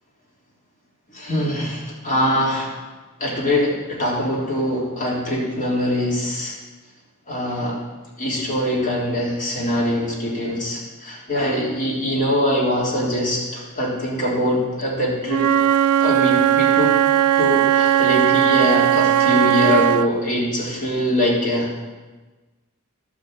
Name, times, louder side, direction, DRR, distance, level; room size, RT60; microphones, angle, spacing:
voice 1, 1.1-2.7 3.2-6.5 7.3-7.8 8.2-15.5 16.0-16.9 17.4-21.9, left 1 dB, 40° left, -4 dB, 3.4 m, -23 dB
Wind instrument woodwind instrument, 15.3-20.1, right 10 dB, 80° right, 0.3 m, -17 dB
11.5 x 6.5 x 8.1 m, 1.2 s
head